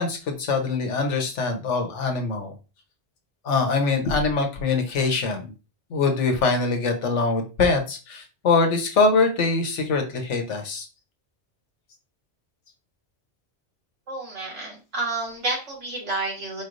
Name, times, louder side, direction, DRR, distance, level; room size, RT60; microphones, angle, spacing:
voice 1, 0.0-2.5 3.4-5.5 5.9-10.9, left 4 dB, 90° left, 4 dB, 1.3 m, -23 dB
voice 2, 14.1-16.6, right 2 dB, 85° right, -4 dB, 2.2 m, -30 dB
4.9 x 3.2 x 2.5 m, 0.31 s
omnidirectional pair, 1.2 m